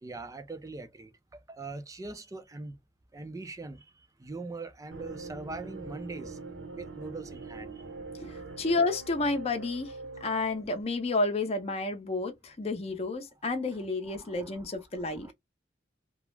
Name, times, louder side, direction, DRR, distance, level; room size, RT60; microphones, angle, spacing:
voice 1, 0.0-2.8 3.1-3.9 4.2-6.4 6.7-7.8 14.1-15.3, right 3 dB, 20° right, 0.4 m, -42 dB
sound 1, 4.9-10.6, right 3 dB, 80° right, 1.0 m, -43 dB
voice 2, 8.2-9.9 10.2-15.3, left 3 dB, 35° left, 0.6 m, -30 dB
2.3 x 2.0 x 3.0 m
head